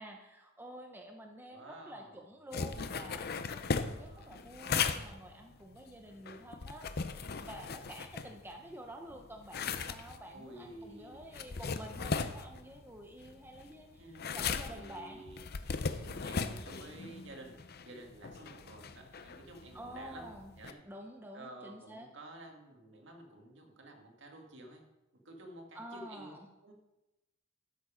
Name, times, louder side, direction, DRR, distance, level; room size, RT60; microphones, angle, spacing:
voice 1, 0.0-6.9 7.3-15.3 19.7-20.5 20.8-22.1 25.7-26.5, right 1 dB, 10° right, 3 dB, 0.8 m, -49 dB
voice 2, 1.5-2.3 3.9-4.4 7.5-7.8 10.3-11.2 14.0-15.4 15.8-20.3 20.6-20.8 21.3-24.8 25.2-26.4 26.6-26.7, right 1 dB, 60° right, 2 dB, 2.0 m, -51 dB
sound 1, 2.5-8.7 9.1-20.7, left 5 dB, 50° left, 0.6 m, -38 dB
12.5 x 7.2 x 5.1 m, 1.0 s
head